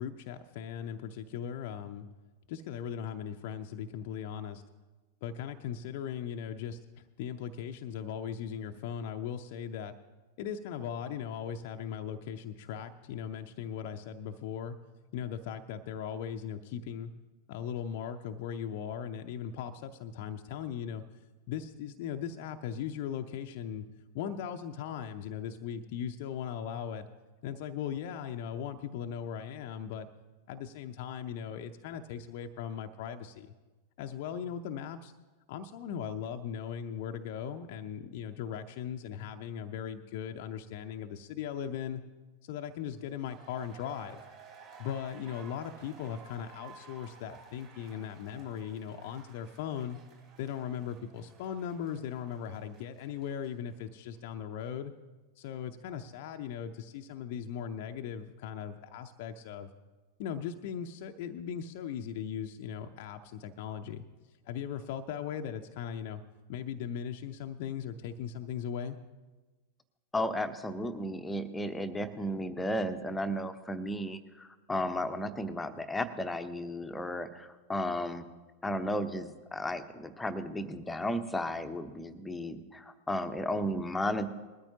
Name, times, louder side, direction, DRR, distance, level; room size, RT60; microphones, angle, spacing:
voice 1, 0.0-2.1 2.5-4.6 5.2-9.9 10.4-14.8 15.1-17.1 17.5-21.0 21.5-23.9 24.1-27.1 27.4-30.1 30.5-33.5 34.0-35.1 35.5-42.0 42.4-44.2 44.8-50.0 50.4-54.9 55.4-59.7 60.2-64.0 64.5-66.2 66.5-69.0, left 8 dB, 50° left, 5 dB, 0.6 m, -38 dB
sound 1, 43.0-53.9 54.1-54.2, right 5 dB, 40° right, 3.3 m, -55 dB
voice 2, 70.1-78.2 78.6-84.3, left 1 dB, 10° left, 9 dB, 0.9 m, -34 dB
20.5 x 13.0 x 2.8 m, 1.2 s
figure-of-eight pair, 90°, 0 cm